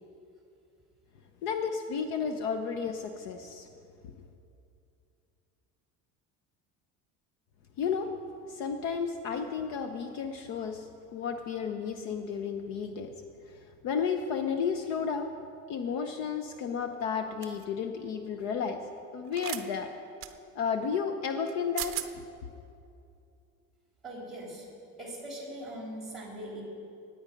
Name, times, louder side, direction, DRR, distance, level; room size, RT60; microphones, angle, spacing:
voice 1, 1.4-3.7 4.0-4.3 7.8-8.1 8.5-13.1 13.5-15.3 15.7-18.8 19.1-19.9 20.5-22.0, left 6 dB, 55° left, 7 dB, 0.7 m, -32 dB
sound 1, 17.4-17.6 19.3-19.6 20.2-20.3 21.5-21.6 21.8-22.1, right 14 dB, 40° right, 0.6 m, -36 dB
voice 2, 24.0-24.7 25.0-26.6, right 1 dB, ahead, -3 dB, 3.2 m, -41 dB
18.0 x 8.8 x 5.1 m, 2.6 s
cardioid pair, 175°, 33 cm